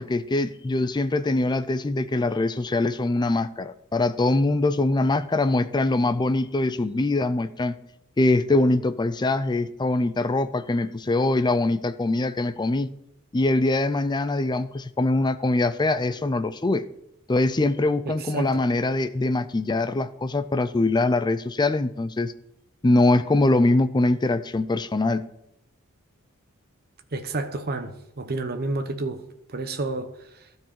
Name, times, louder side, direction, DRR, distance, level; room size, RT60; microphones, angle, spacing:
voice 1, 0.0-7.8 8.2-12.9 13.3-16.9 17.3-22.3 22.8-25.3, left 2 dB, 20° left, 0.4 m, -23 dB
voice 2, 18.1-18.6 27.1-30.1, right 2 dB, 45° right, 0.9 m, -30 dB
12.5 x 4.7 x 7.4 m
head